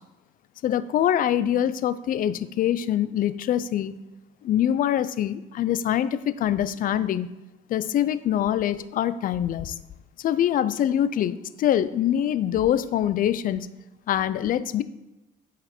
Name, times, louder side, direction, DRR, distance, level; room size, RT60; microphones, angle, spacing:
voice 1, 0.6-3.9 4.4-7.3 7.7-9.7 10.2-13.7 14.1-14.8, left 10 dB, 55° left, 15 dB, 0.5 m, -24 dB
11.0 x 4.9 x 4.4 m, 0.98 s
cardioid pair, 110°, 17 cm